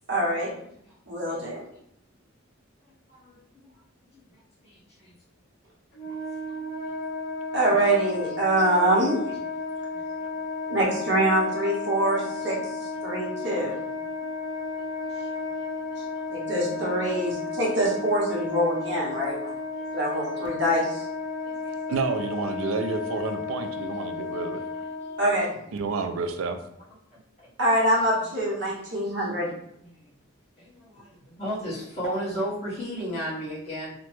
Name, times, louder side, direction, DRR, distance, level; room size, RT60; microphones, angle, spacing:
voice 1, 0.1-0.5 1.1-1.6 7.5-9.2 10.7-12.6 13.0-13.8 16.3-19.5 19.9-21.0 25.2-25.5 27.6-29.5, right 1 dB, 55° right, -4 dB, 0.9 m, -24 dB
voice 2, 3.1-3.7 4.1-4.2 4.6-4.8 6.5-6.6 9.9-10.0 15.1-15.3 15.9-16.4 19.7-19.8 21.5-21.7 24.1-24.2 25.0-25.1 29.0-29.1 29.8-29.9 30.6-33.9, equal, 30° left, -9 dB, 1.2 m, -34 dB
Wind instrument woodwind instrument, 5.9-25.4, left 3 dB, 45° left, 1.0 m, -33 dB
voice 3, 21.9-24.6 25.7-26.6, right 4 dB, 80° right, 7 dB, 0.4 m, -29 dB
2.9 x 2.1 x 3.0 m, 0.73 s
head